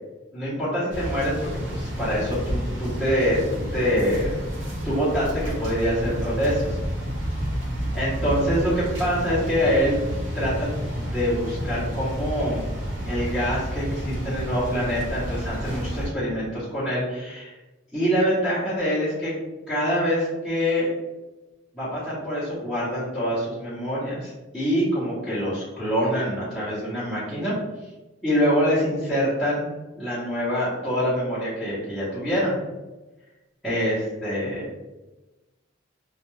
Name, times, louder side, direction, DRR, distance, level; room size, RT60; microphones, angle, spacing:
voice 1, 0.3-4.3 4.8-6.8 7.9-10.0 10.3-12.7 13.0-17.5 17.9-19.3 19.7-20.9 21.7-27.5 28.2-29.7 29.9-32.5 33.6-34.7, equal, ahead, -14 dB, 0.8 m, -25 dB
sound 1, 0.9-16.1, equal, 80° right, 0.9 m, -30 dB
2.3 x 2.2 x 3.0 m, 1.1 s
head